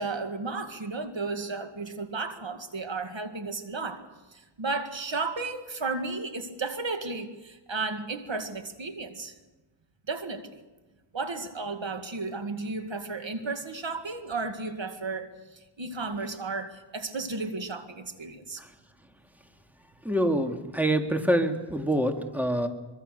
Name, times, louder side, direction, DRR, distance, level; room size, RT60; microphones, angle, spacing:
voice 1, 0.0-4.0 4.3-9.3 10.1-10.6 11.1-18.6, right 3 dB, 65° right, 7 dB, 2.1 m, -34 dB
voice 2, 20.0-22.7, right 1 dB, 5° right, 5 dB, 2.4 m, -26 dB
24.5 x 24.0 x 6.7 m, 1.2 s
wide cardioid pair, 60°, 49 cm